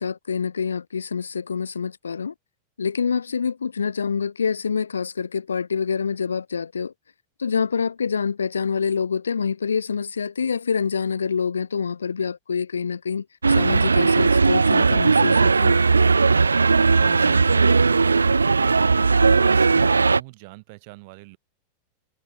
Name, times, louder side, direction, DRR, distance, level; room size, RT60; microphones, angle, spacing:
voice 1, 0.0-2.3 2.8-6.9 7.4-15.8, left 6 dB, 75° left, 0.9 m, -26 dB
sound 1, 13.4-20.2, right 4 dB, 75° right, 0.3 m, -18 dB
voice 2, 16.9-21.4, right 28 dB, 45° right, 5.0 m, -42 dB
figure-of-eight pair, 90°, 0 cm